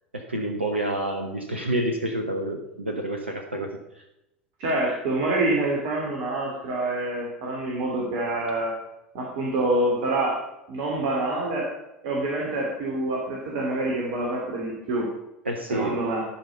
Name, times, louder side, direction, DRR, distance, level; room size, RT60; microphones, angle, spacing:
voice 1, 0.1-4.0 15.4-16.0, right 1 dB, 85° right, 4 dB, 1.0 m, -29 dB
voice 2, 4.6-8.7 9.1-10.4 10.7-11.7 12.0-15.1 15.7-16.2, right 2 dB, 55° right, -2 dB, 2.9 m, -26 dB
12.5 x 5.6 x 6.6 m, 0.88 s
figure-of-eight pair, 75°, 6 cm